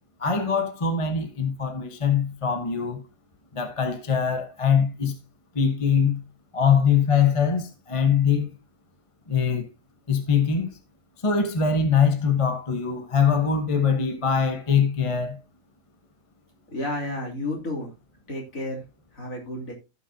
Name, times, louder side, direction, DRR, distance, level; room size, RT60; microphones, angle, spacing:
voice 1, 0.2-3.0 3.5-5.1 5.5-6.2 6.5-8.5 9.3-9.7 10.1-10.8 11.2-15.4, left 6 dB, 25° left, 0.9 m, -22 dB
voice 2, 16.7-17.9 18.3-19.7, left 1 dB, 50° left, 3.3 m, -32 dB
15.5 x 6.0 x 2.7 m
omnidirectional pair, 1.8 m